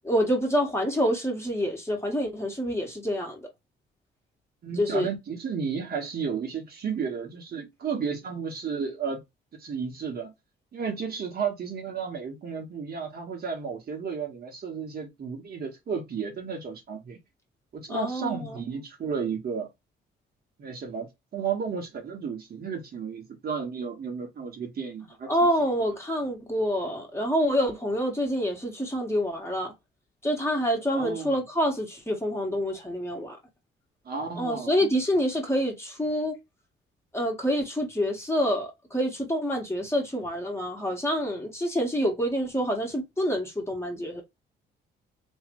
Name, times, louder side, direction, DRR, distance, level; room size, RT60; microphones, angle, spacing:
voice 1, 0.0-3.5 4.8-5.1 17.9-18.6 25.3-29.7 30.2-33.4 34.4-36.4 37.1-44.2, equal, 15° left, 1.7 m, -27 dB
voice 2, 4.6-9.2 9.5-10.3 10.7-17.2 17.7-19.7 20.6-25.3 30.9-31.4 34.1-35.0, right 6 dB, 50° right, 1.7 m, -33 dB
3.3 x 3.1 x 3.1 m
cardioid pair, 90°, 20 cm